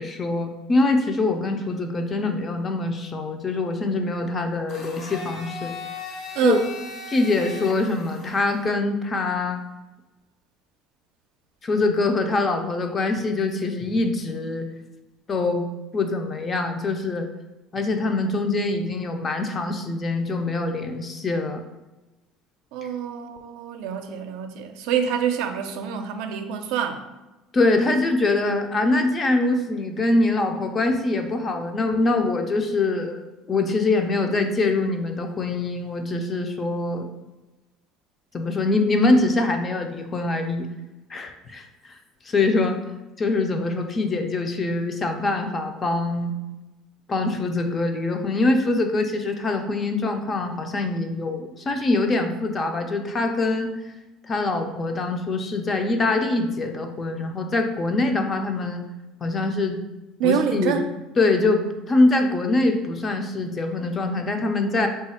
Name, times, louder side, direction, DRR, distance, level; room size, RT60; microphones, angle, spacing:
voice 1, 0.0-5.7 6.4-6.6 7.1-9.6 11.6-14.7 15.3-15.7 15.9-17.3 17.7-21.6 27.5-33.2 33.5-37.1 38.3-40.7 41.1-42.0 42.2-42.8 43.2-46.4 47.1-53.7 54.3-58.8 59.2-59.8 60.2-60.8 61.2-64.9, left 2 dB, 25° left, 5 dB, 0.4 m, -24 dB
Domestic sounds home sounds, 4.7-8.7, left 3 dB, 50° left, 0.7 m, -38 dB
voice 2, 22.7-27.0 60.2-60.9, right 8 dB, 75° right, 6 dB, 0.4 m, -26 dB
3.3 x 2.3 x 4.2 m, 1.1 s
cardioid pair, 135°, 0 cm